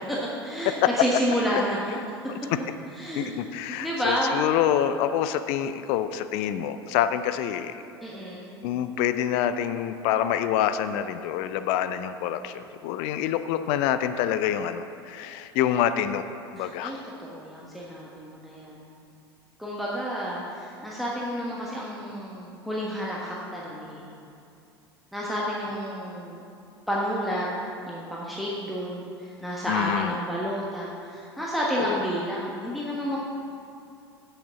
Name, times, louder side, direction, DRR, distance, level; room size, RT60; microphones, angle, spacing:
voice 1, 0.2-1.9 3.0-3.4 3.7-4.4 8.0-8.5 16.6-18.8 19.6-24.0 25.1-26.4 26.9-27.5 27.8-33.2, equal, ahead, -6 dB, 1.4 m, -30 dB
voice 2, 3.2-7.8 8.6-16.2 16.5-16.9 29.7-30.1 31.8-32.0, left 10 dB, 45° left, 11 dB, 0.5 m, -26 dB
8.6 x 6.5 x 7.0 m, 2.6 s
figure-of-eight pair, 75°, 13 cm